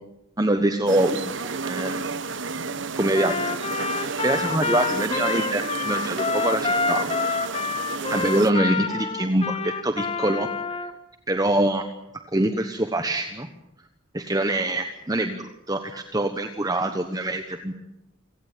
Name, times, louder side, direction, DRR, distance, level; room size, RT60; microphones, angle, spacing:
voice 1, 0.4-2.0 3.0-3.6 4.2-7.1 8.1-10.9 11.3-11.8 12.3-13.5 14.1-17.7, right 1 dB, 15° right, 7 dB, 1.2 m, -24 dB
sound 1, 0.9-8.5, right 4 dB, 60° right, 1.2 m, -31 dB
Trumpet, 3.1-10.9, left 4 dB, 30° left, 1.6 m, -28 dB
28.0 x 17.5 x 9.2 m, 0.89 s
head